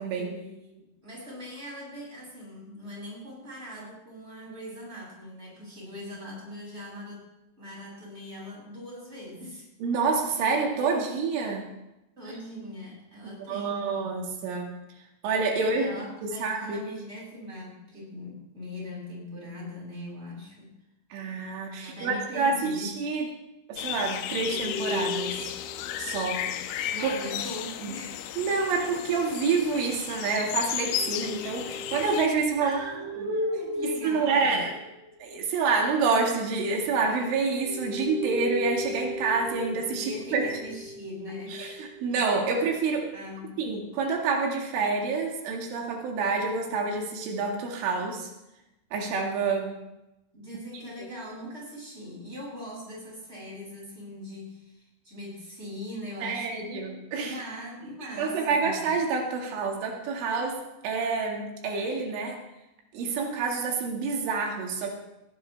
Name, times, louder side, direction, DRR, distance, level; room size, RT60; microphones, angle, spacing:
voice 1, 0.1-7.3 7.6-10.0 10.4-11.0 12.2-14.1 15.5-20.7 21.8-23.0 26.9-28.3 32.6-34.6 40.0-41.6 43.1-43.6 50.3-59.0, left 1 dB, 15° right, -4 dB, 7.3 m, -41 dB
voice 2, 9.8-11.7 13.5-14.8 15.2-15.9 16.2-16.8 21.1-23.3 23.7-25.5 26.0-27.1 27.8-28.0 28.4-32.8 33.8-34.7 35.2-40.4 41.5-43.1 43.6-48.3 48.9-49.8 51.0-51.1 56.2-57.4 58.2-60.6 60.8-62.4 62.9-64.9, right 4 dB, 85° right, 0 dB, 4.5 m, -28 dB
sound 1, 23.8-32.3, left 11 dB, 80° left, 3.0 m, -34 dB
sound 2, 24.4-26.3 30.7-35.2 36.6-42.7, left 2 dB, 60° left, 4.7 m, -37 dB
20.0 x 16.5 x 3.4 m, 0.93 s
omnidirectional pair, 5.4 m